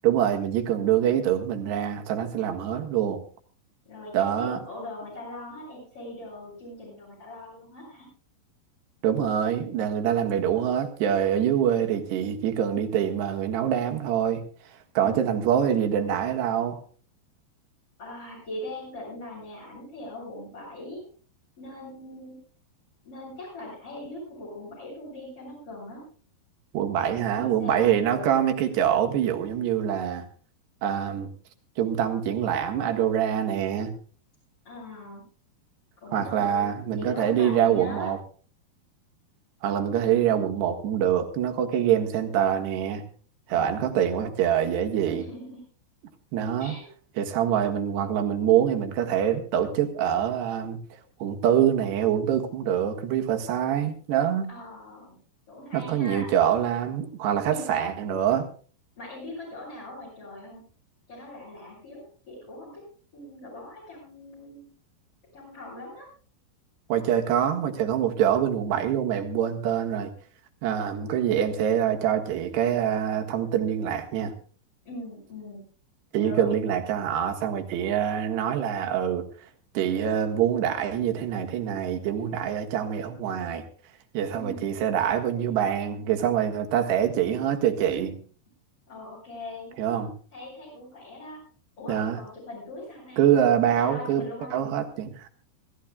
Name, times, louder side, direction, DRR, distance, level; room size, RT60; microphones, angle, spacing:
voice 1, 0.0-3.2 4.1-4.6 9.0-14.5 15.0-16.8 26.7-30.3 30.8-31.3 31.8-33.9 36.1-38.2 39.6-43.0 43.5-45.3 46.3-46.8 47.2-50.8 51.2-54.5 55.7-58.5 66.9-70.1 70.6-74.3 76.1-79.3 79.8-83.6 84.1-88.2 89.8-90.1 91.9-92.2 93.2-94.2 94.5-95.3, right 9 dB, 70° right, 3.6 m, -25 dB
voice 2, 3.8-8.1 15.0-15.5 18.0-21.0 21.6-22.4 23.0-26.0 27.0-28.4 34.7-35.2 36.0-36.7 37.0-38.1 43.5-44.0 45.0-45.6 46.6-46.9 52.6-52.7 54.5-55.2 55.5-56.3 57.5-57.9 59.0-60.6 61.1-62.8 63.1-64.7 65.3-66.1 74.8-75.6 76.1-76.5 84.3-84.7 88.9-89.7 90.3-91.4 91.8-93.2 93.7-94.6, left 1 dB, 30° left, 9.0 m, -40 dB
25.5 x 15.0 x 2.3 m
omnidirectional pair, 5.2 m